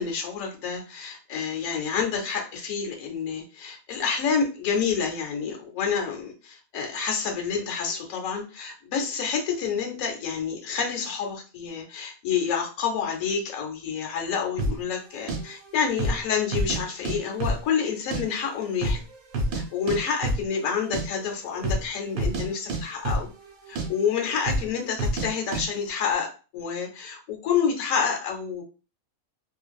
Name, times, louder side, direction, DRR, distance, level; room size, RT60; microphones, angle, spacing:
voice 1, 0.0-19.0 19.5-23.3 23.7-28.6, left 6 dB, 75° left, 2 dB, 1.0 m, -28 dB
sound 1, 14.6-14.8 15.3-15.4 15.9-16.2 16.5-17.2 17.4-18.2 18.5-18.6 18.8-19.6 19.9-20.0 20.2-20.5 20.7-21.0 21.6-21.9 22.1-22.4 22.7-23.5 23.8-23.9 24.4-24.7 25.0-25.3 25.5-25.6, right 1 dB, 80° right, 1.1 m, -27 dB
2.5 x 2.2 x 2.3 m, 0.34 s
omnidirectional pair, 1.5 m